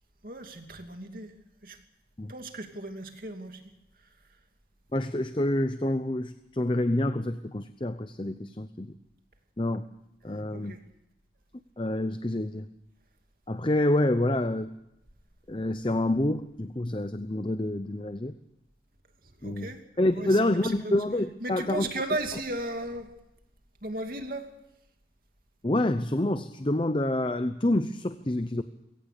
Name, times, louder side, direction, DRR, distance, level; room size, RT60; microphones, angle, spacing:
voice 1, 0.2-1.3 1.6-1.8 2.3-3.7 10.5-10.8 19.4-19.8 20.2-21.0 21.4-23.1 23.8-24.5, right 2 dB, 50° right, 4 dB, 2.7 m, -35 dB
voice 2, 4.9-8.9 9.6-9.8 10.2-10.8 11.8-12.7 13.5-14.7 15.5-18.3 19.4-21.9 25.6-28.6, left 1 dB, 30° left, 10 dB, 0.7 m, -27 dB
22.5 x 18.0 x 6.8 m, 0.88 s
head